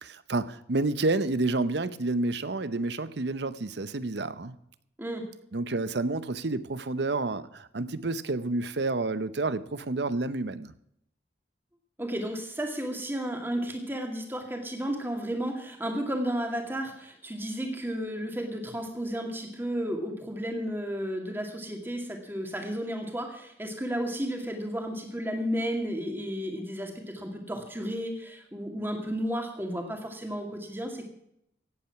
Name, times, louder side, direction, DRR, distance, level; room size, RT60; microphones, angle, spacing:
voice 1, 0.0-4.6 5.5-10.7, right 2 dB, 65° right, 15 dB, 0.8 m, -29 dB
voice 2, 12.0-31.0, equal, 10° right, 3 dB, 2.2 m, -33 dB
17.0 x 8.7 x 5.9 m, 0.77 s
head